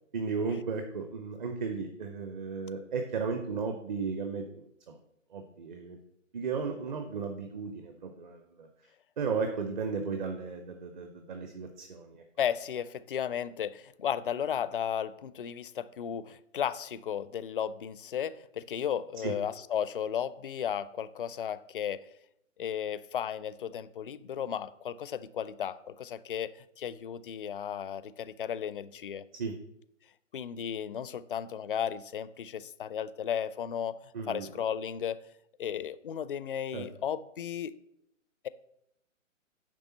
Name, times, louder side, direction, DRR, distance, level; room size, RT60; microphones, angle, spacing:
voice 1, 0.1-5.0 5.3-6.0 6.3-8.7 9.2-12.2 19.2-19.3 29.4-29.5 34.1-34.5 36.7-36.8, right 5 dB, 35° right, 0.9 m, -35 dB
voice 2, 12.4-22.1 22.6-26.5 26.8-29.2 30.3-34.0 34.3-35.2 35.6-37.7, left 9 dB, 45° left, 0.4 m, -34 dB
9.8 x 3.5 x 7.0 m
figure-of-eight pair, 130°, 39 cm